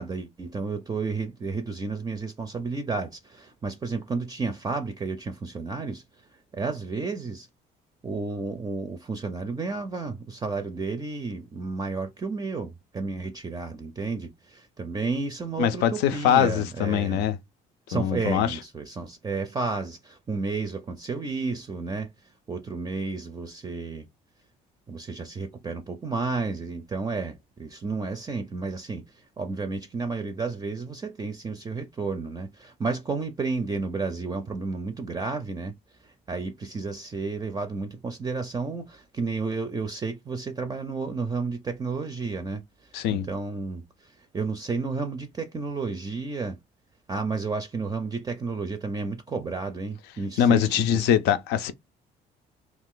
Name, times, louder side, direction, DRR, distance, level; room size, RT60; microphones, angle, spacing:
voice 1, 0.0-6.0 6.5-7.5 8.0-17.2 17.9-22.1 22.5-24.1 24.9-35.8 36.0-42.6 43.1-46.6 47.1-51.1, right 4 dB, 20° right, 0.4 m, -32 dB
voice 2, 15.6-17.4 17.9-18.6 42.9-43.3 50.4-51.7, left 9 dB, 85° left, 0.5 m, -23 dB
2.4 x 2.4 x 3.7 m
cardioid pair, 110°, 17 cm